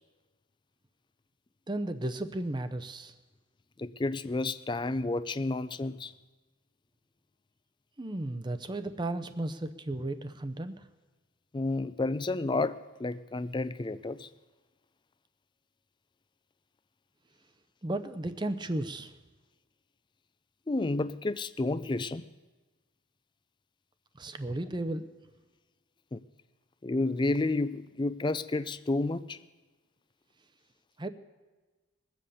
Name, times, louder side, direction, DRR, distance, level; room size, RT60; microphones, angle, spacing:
voice 1, 1.7-3.1 8.0-10.8 17.8-19.1 24.2-25.0 31.0-31.1, right 1 dB, 20° right, 9 dB, 0.6 m, -34 dB
voice 2, 3.8-6.1 11.5-14.3 20.7-22.3 26.1-26.2 26.8-29.4, left 2 dB, 20° left, 15 dB, 0.3 m, -31 dB
21.0 x 7.7 x 6.8 m, 1.3 s
head